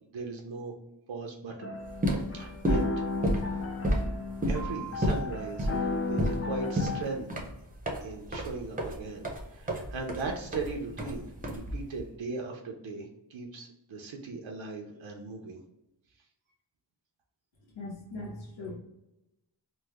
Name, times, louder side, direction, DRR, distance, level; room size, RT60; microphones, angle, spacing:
voice 1, 0.1-0.7 1.1-1.8 2.3-2.8 3.1-3.4 4.5-7.5 8.0-15.6, right 3 dB, 80° right, 2 dB, 0.6 m, -38 dB
sound 1, 1.6-7.0, left 3 dB, 35° left, 0.4 m, -34 dB
sound 2, 1.8-12.0, equal, 20° right, 0.6 m, -31 dB
voice 2, 17.7-18.7, left 2 dB, 80° left, -4 dB, 0.9 m, -40 dB
3.1 x 2.0 x 3.4 m, 0.90 s
wide cardioid pair, 110°, 45 cm